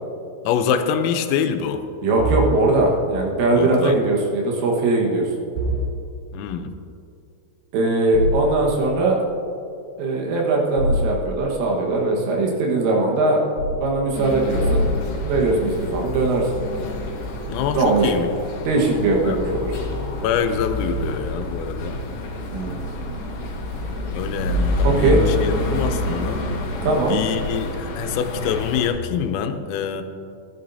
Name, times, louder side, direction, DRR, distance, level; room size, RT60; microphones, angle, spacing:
voice 1, 0.5-1.8 3.6-4.0 6.3-6.7 17.5-18.3 19.3-19.4 20.1-22.0 24.1-25.2 25.4-26.4 27.1-30.0, left 8 dB, 90° left, 7 dB, 3.4 m, -25 dB
voice 2, 2.0-5.3 7.7-9.2 10.0-13.4 13.8-14.9 15.2-16.7 17.7-18.2 18.7-19.7 22.5-22.8 24.8-25.2 26.8-27.2, right 2 dB, 75° right, 0 dB, 3.9 m, -20 dB
sound 1, 2.2-2.5 5.5-5.9 8.1-8.4 10.8-11.1 13.6-13.8 14.5-15.1, equal, 60° right, 2.4 m, -22 dB
sound 2, 14.1-28.9, left 1 dB, 60° left, 3.7 m, -27 dB
16.5 x 11.0 x 2.7 m, 2.5 s
omnidirectional pair, 5.9 m